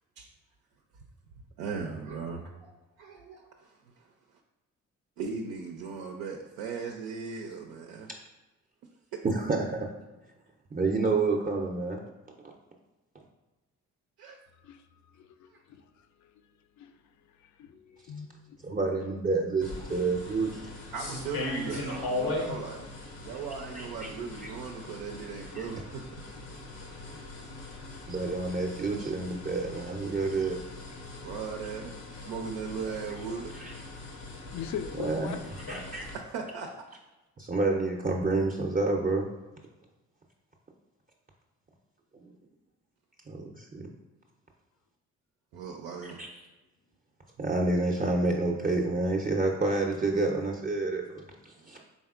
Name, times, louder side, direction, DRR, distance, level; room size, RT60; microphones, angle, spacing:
voice 1, 1.6-2.7 3.0-4.1 5.2-8.1 9.1-9.2 14.2-14.4 20.9-22.8 23.2-26.2 31.2-33.5 36.1-36.8 45.5-46.3 51.6-51.8, right 5 dB, 80° right, 0.5 m, -38 dB
voice 2, 9.2-9.9 10.7-12.0 18.6-20.6 21.7-21.8 23.7-24.1 24.4-24.5 25.5-25.7 28.1-30.6 33.5-33.7 35.0-35.4 35.7-36.1 37.4-39.3 42.2-42.3 43.3-43.9 46.0-46.3 47.4-51.8, right 3 dB, 25° right, 0.5 m, -29 dB
voice 3, 14.6-18.7 21.7-22.9 23.1-23.2 24.5-25.7 26.3-26.8 27.1-27.8 29.3-29.6 34.5-35.4, left 8 dB, 55° left, 0.5 m, -45 dB
sound 1, 19.6-36.2, left 2 dB, 75° left, 0.9 m, -40 dB
4.1 x 3.4 x 2.4 m
hypercardioid pair, 45°, 35 cm